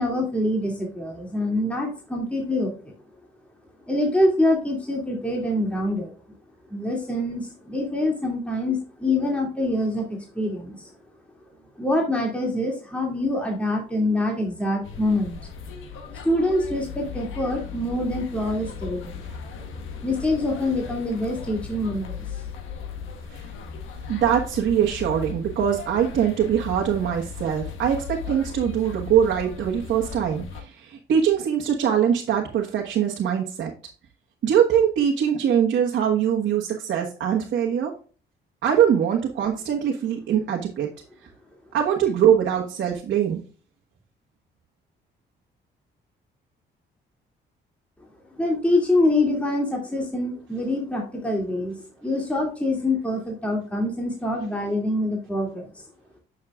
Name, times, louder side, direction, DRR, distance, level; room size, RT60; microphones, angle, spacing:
voice 1, 0.0-2.9 3.9-6.1 6.7-10.9 11.8-15.4 16.2-19.2 20.0-22.5 48.4-55.9, left 1 dB, 5° left, -1 dB, 2.4 m, -25 dB
sound 1, 14.8-30.6, left 6 dB, 85° left, 1.4 m, -37 dB
voice 2, 24.1-33.7 34.4-37.9 38.6-40.9 41.7-43.4, right 9 dB, 70° right, 0 dB, 1.4 m, -22 dB
9.5 x 6.5 x 2.4 m, 0.38 s
cardioid pair, 90°, 20 cm